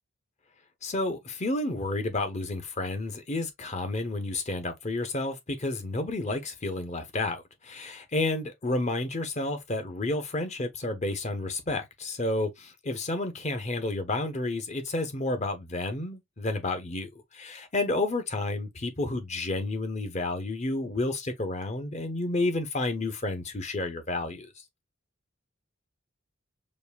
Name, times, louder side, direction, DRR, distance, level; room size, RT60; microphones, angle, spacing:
voice 1, 0.8-24.5, left 2 dB, 35° left, 0.8 m, -31 dB
5.1 x 2.5 x 2.2 m
head